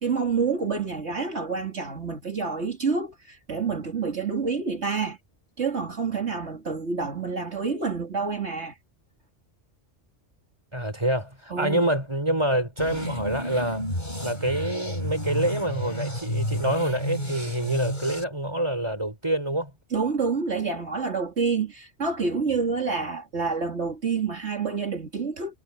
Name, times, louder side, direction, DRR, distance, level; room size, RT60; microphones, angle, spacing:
voice 1, 0.0-5.2 5.6-8.7 11.5-11.9 19.9-25.5, right 5 dB, 70° right, 3.0 m, -28 dB
voice 2, 10.7-13.8 14.2-19.7, right 1 dB, 25° right, 5.3 m, -26 dB
sound 1, 12.8-18.2, left 1 dB, 40° left, 7.6 m, -31 dB
omnidirectional pair, 1.2 m